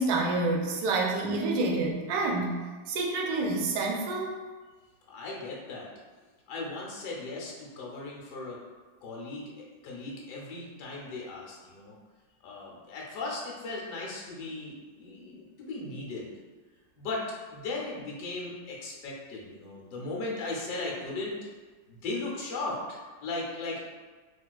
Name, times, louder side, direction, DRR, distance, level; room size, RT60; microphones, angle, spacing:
voice 1, 0.0-2.6 2.9-4.4, right 2 dB, 70° right, 0 dB, 0.9 m, -28 dB
voice 2, 5.1-5.9 6.5-8.6 9.0-9.4 9.8-12.0 12.4-16.3 17.0-21.3 21.9-23.8, left 2 dB, 70° left, -3 dB, 1.3 m, -37 dB
3.7 x 2.4 x 2.3 m, 1.4 s
omnidirectional pair, 2.0 m